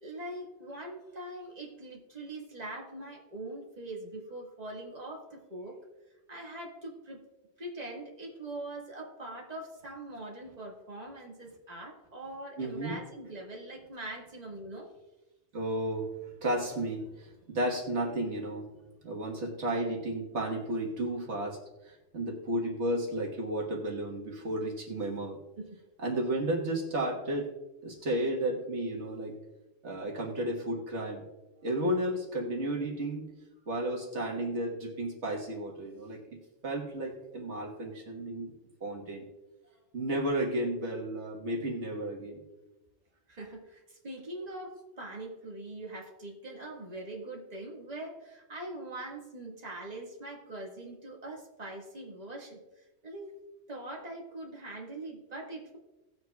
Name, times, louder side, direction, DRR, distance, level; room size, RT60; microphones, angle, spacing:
voice 1, 0.0-5.8 6.3-7.2 7.6-14.9 25.6-25.7 31.6-31.7 39.6-39.7 43.3-53.3 53.7-55.8, right 2 dB, 35° right, -2 dB, 1.9 m, -42 dB
voice 2, 12.6-13.0 15.5-16.1 16.4-18.7 19.0-25.4 26.0-27.5 27.8-29.3 29.8-31.2 31.6-33.2 33.7-36.2 36.6-38.5 38.8-39.2 39.9-42.4, right 1 dB, 75° right, 0 dB, 1.7 m, -33 dB
18.0 x 7.7 x 2.3 m, 1.1 s
omnidirectional pair, 1.2 m